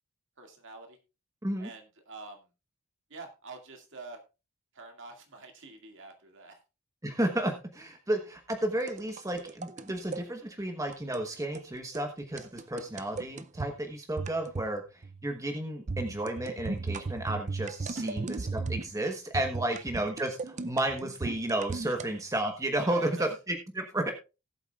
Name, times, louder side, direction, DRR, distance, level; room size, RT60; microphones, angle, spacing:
voice 1, 0.4-1.0 1.6-2.5 3.1-4.2 4.7-6.6 18.0-18.3 19.7-19.8 21.9-22.0 22.8-23.3, right 3 dB, 55° right, 4 dB, 2.1 m, -46 dB
voice 2, 7.0-24.1, right 1 dB, 15° right, 4 dB, 1.1 m, -32 dB
sound 1, 8.8-10.2 10.9-11.3 11.5-11.7 11.9-12.1 12.4-13.7 14.2-14.8 15.0-15.3 15.9-19.0 19.3-22.1, right 3 dB, 30° right, 0.4 m, -36 dB
18.5 x 8.0 x 2.4 m, 0.29 s
head